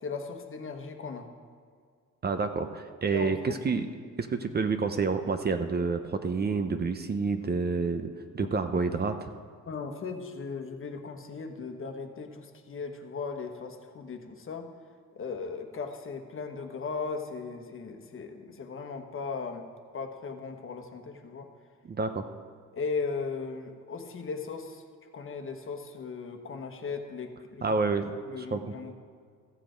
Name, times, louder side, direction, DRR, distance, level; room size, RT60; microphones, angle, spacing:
voice 1, 0.0-1.3 3.1-3.9 7.5-7.7 8.4-8.5 9.7-14.7 15.1-19.6 19.9-21.5 22.7-24.8 25.1-27.8 28.3-29.0, left 4 dB, 45° left, 5 dB, 1.2 m, -37 dB
voice 2, 2.2-3.9 4.2-8.1 8.3-9.1 21.9-22.3 27.6-28.1 28.5-28.6, right 4 dB, 35° right, 8 dB, 0.7 m, -28 dB
14.0 x 7.5 x 5.1 m, 2.1 s
cardioid pair, 90°, 30 cm